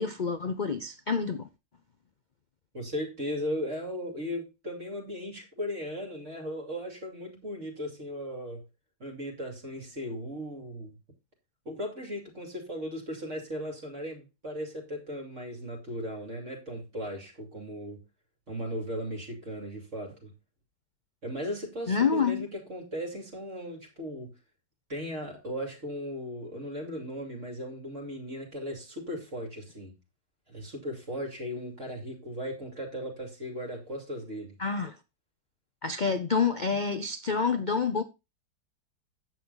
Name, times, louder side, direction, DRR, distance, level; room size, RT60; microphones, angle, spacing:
voice 1, 0.0-1.5 21.9-22.4 34.6-35.0 35.8-38.0, left 5 dB, 80° left, 0.4 m, -28 dB
voice 2, 2.7-8.6 9.0-10.9 11.6-18.0 18.5-20.3 21.2-24.3 24.9-29.9 30.5-34.6, equal, 40° right, 2.9 m, -37 dB
9.9 x 7.6 x 4.0 m
omnidirectional pair, 2.0 m